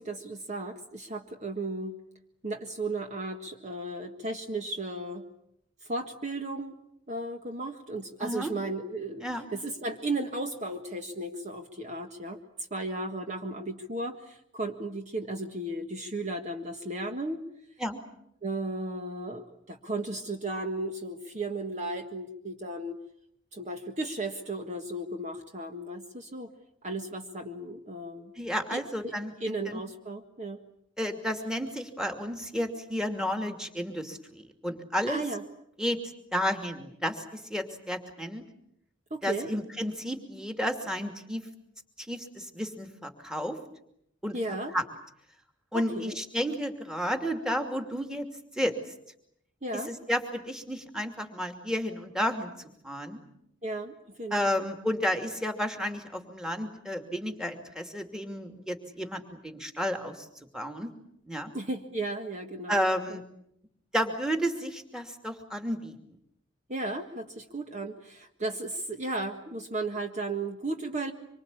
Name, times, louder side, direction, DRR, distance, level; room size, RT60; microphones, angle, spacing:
voice 1, 0.0-2.0 2.4-5.3 5.8-6.8 7.1-9.2 9.5-12.4 12.7-17.4 18.4-23.0 23.5-26.5 26.8-28.3 28.7-29.1 29.4-30.6 35.1-35.4 39.1-39.5 44.3-44.7 45.7-46.2 49.6-49.9 53.6-54.6 61.5-62.8 66.7-71.1, right 2 dB, 35° right, 5 dB, 1.7 m, -35 dB
voice 2, 8.2-8.5 9.2-9.5 17.8-18.0 28.4-29.3 29.6-29.8 31.0-35.2 35.8-36.0 36.3-38.4 39.2-41.4 42.1-43.6 44.2-44.4 44.7-44.8 45.7-48.3 48.6-48.7 49.7-53.2 54.3-60.3 60.5-60.9 61.3-61.5 62.7-63.2 63.9-65.9, equal, 5° right, 6 dB, 2.6 m, -32 dB
26.0 x 24.5 x 8.5 m, 0.75 s
head